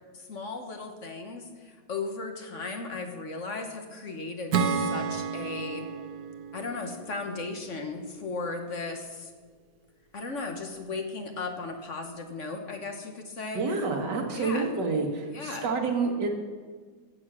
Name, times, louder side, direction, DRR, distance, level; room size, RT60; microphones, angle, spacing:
voice 1, 0.1-5.9 6.5-9.3 10.1-13.6 14.3-14.7 15.3-15.7, left 3 dB, 45° left, 4 dB, 1.5 m, -36 dB
Acoustic guitar / Strum, 4.5-8.0, right 6 dB, 65° right, 1.3 m, -31 dB
voice 2, 13.5-16.3, right 4 dB, 85° right, 3 dB, 2.3 m, -28 dB
14.5 x 7.9 x 6.2 m, 1.5 s
omnidirectional pair, 1.8 m